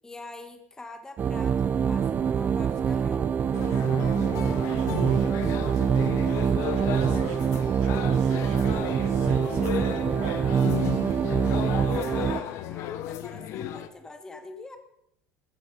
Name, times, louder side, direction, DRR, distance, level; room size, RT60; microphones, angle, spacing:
voice 1, 0.0-3.5 11.8-14.8, left 2 dB, 10° left, 6 dB, 1.6 m, -45 dB
sound 1, 1.2-12.4, right 7 dB, 30° right, 0.6 m, -25 dB
sound 2, 3.5-13.9, left 11 dB, 60° left, 1.4 m, -34 dB
voice 2, 4.6-6.2 6.6-10.5, right 10 dB, 85° right, 8 dB, 2.0 m, -38 dB
14.5 x 13.5 x 5.6 m, 0.76 s
supercardioid pair, 110°, 6 cm